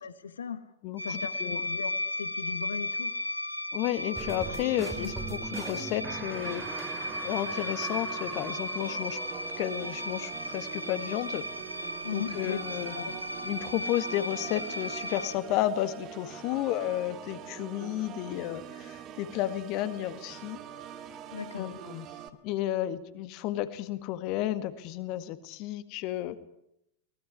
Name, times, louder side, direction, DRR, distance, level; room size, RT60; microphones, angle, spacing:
voice 1, 0.0-0.6 1.0-3.1 5.0-5.1 12.0-13.3 21.3-21.7, left 7 dB, 70° left, 12 dB, 1.4 m, -38 dB
voice 2, 0.8-1.6 3.7-6.7 7.2-9.2 9.6-11.4 12.1-13.0 13.4-20.6 21.5-22.1 22.4-26.4, left 13 dB, 40° left, 12 dB, 1.9 m, -32 dB
sound 1, 1.0-15.3, left 1 dB, 90° right, 1.3 m, -36 dB
sound 2, 4.2-9.8, right 4 dB, 15° right, 2.4 m, -41 dB
Organ, 6.3-22.3, right 10 dB, 35° right, 2.1 m, -44 dB
23.5 x 19.5 x 9.6 m, 0.79 s
figure-of-eight pair, 90°, 0 cm